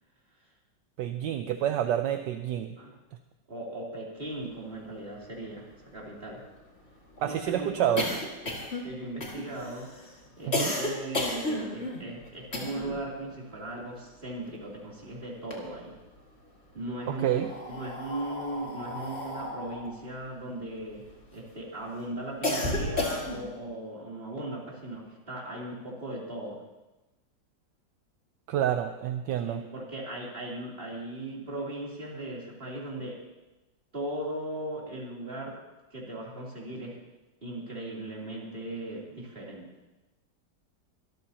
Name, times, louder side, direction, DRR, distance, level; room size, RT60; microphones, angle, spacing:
voice 1, 1.0-2.8 7.2-8.1 10.5-10.8 17.1-17.5 28.5-29.6, right 11 dB, 75° right, 7 dB, 1.3 m, -28 dB
voice 2, 3.5-6.4 7.2-8.0 8.4-9.9 10.4-15.9 16.7-21.0 21.3-26.6 29.4-33.2 33.9-35.6 35.9-37.0 37.4-39.7, right 1 dB, 30° right, -4 dB, 3.5 m, -38 dB
sound 1, 4.8-4.9 5.2-5.3 5.6-13.1 13.3-14.9 15.2-16.2 16.9-21.4 21.8-23.6, left 2 dB, 35° left, 2.4 m, -34 dB
24.0 x 13.5 x 2.9 m, 1.0 s
omnidirectional pair, 2.0 m